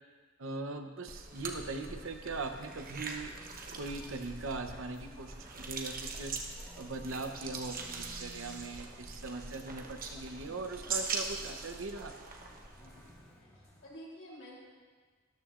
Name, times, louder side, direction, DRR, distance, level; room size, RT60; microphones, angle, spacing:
voice 1, 0.4-3.3 3.7-6.3 6.8-12.1, right 3 dB, 80° right, 6 dB, 0.8 m, -40 dB
sound 1, 1.1-13.3, right 4 dB, 45° right, 1.0 m, -42 dB
sound 2, 1.2-13.9, left 1 dB, 15° left, 1.8 m, -57 dB
voice 2, 12.8-13.1 13.4-14.6, equal, 65° left, -5 dB, 3.6 m, -51 dB
13.0 x 12.5 x 2.5 m, 1.5 s
head